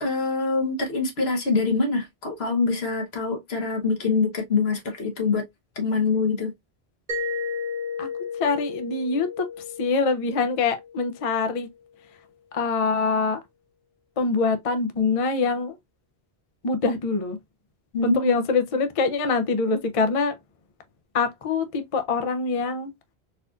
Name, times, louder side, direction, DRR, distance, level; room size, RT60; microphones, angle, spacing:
voice 1, 0.0-5.5 5.8-6.5 17.9-18.3, left 4 dB, 75° left, 1.3 m, -24 dB
Mallet percussion, 7.1-11.7, left 4 dB, 50° right, 1.0 m, -34 dB
voice 2, 8.4-9.5 9.8-11.7 12.5-13.4 14.2-15.8 16.6-17.4 18.0-20.3 21.1-22.9, left 4 dB, 40° left, 0.5 m, -24 dB
4.3 x 2.4 x 2.4 m
omnidirectional pair, 1.1 m